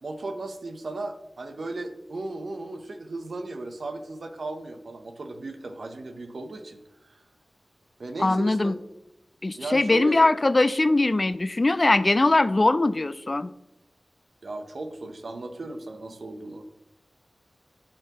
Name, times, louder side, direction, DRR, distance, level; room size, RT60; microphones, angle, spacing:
voice 1, 0.0-7.2 8.0-8.8 9.5-10.2 14.4-16.6, right 2 dB, 65° right, 6 dB, 0.9 m, -36 dB
voice 2, 8.2-8.7 9.4-13.5, left 2 dB, 35° left, 14 dB, 0.3 m, -21 dB
11.5 x 4.6 x 3.0 m, 0.87 s
wide cardioid pair, 75°, 0 cm